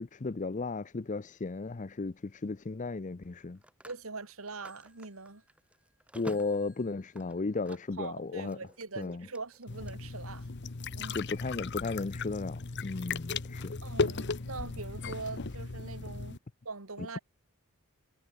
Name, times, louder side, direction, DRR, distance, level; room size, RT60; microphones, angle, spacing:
voice 1, 0.0-3.6 6.2-8.6 9.0-9.3 11.1-13.7 17.0-17.1, left 3 dB, 35° left, 0.5 m, -35 dB
Telephone, 1.0-1.3 3.2-8.1 8.4-9.9, equal, 5° right, 6.9 m, -52 dB
voice 2, 3.8-5.4 8.0-10.5 11.0-11.2 13.8-16.4 16.6-17.2, right 3 dB, 70° right, 2.3 m, -42 dB
sound 1, 9.7-16.4, left 4 dB, 50° left, 0.9 m, -36 dB
head